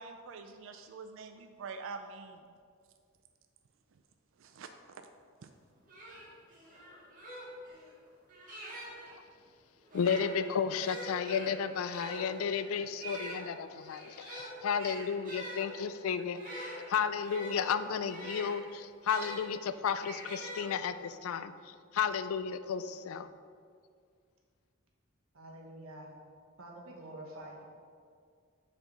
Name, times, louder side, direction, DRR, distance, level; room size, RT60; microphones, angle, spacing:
voice 1, 0.0-2.5 4.4-4.7 5.4-5.5, right 4 dB, 65° right, 7 dB, 0.4 m, -45 dB
sound 1, 5.5-5.6 5.9-9.1 9.8-19.4 20.0-21.1, right 1 dB, 40° right, 1.9 m, -45 dB
voice 2, 9.9-23.3, left 6 dB, 90° left, 12 dB, 0.4 m, -33 dB
voice 3, 25.3-26.1 26.6-27.6, right 1 dB, 90° right, 0 dB, 1.4 m, -47 dB
6.6 x 4.7 x 5.7 m, 2.1 s
head